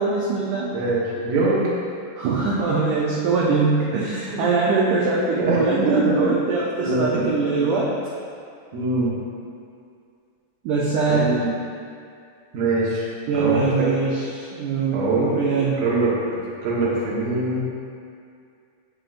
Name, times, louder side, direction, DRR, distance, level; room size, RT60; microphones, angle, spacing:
voice 1, 0.0-0.7 2.2-7.9 10.6-11.3 13.3-15.8, right 4 dB, 90° right, -5 dB, 1.7 m, -22 dB
voice 2, 0.7-1.7 4.0-4.4 5.3-6.3 6.8-7.3 8.7-9.2 11.1-11.5 12.5-13.1 13.3-13.9 14.9-15.4 15.8-17.6, right 2 dB, 65° right, -6 dB, 1.9 m, -23 dB
7.8 x 5.9 x 2.5 m, 2.4 s
omnidirectional pair, 4.4 m